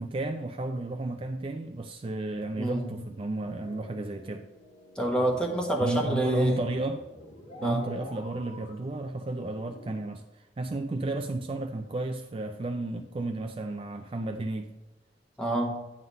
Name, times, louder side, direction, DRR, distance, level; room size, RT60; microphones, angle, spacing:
voice 1, 0.0-4.5 5.8-7.0 7.6-14.7, right 2 dB, 30° right, 5 dB, 0.4 m, -32 dB
voice 2, 2.6-2.9 5.0-6.6 7.6-7.8 15.4-15.7, right 1 dB, 5° left, 0 dB, 1.2 m, -27 dB
sound 1, 3.4-10.0, equal, 40° left, 1.6 m, -49 dB
9.4 x 3.8 x 5.4 m, 1.1 s
head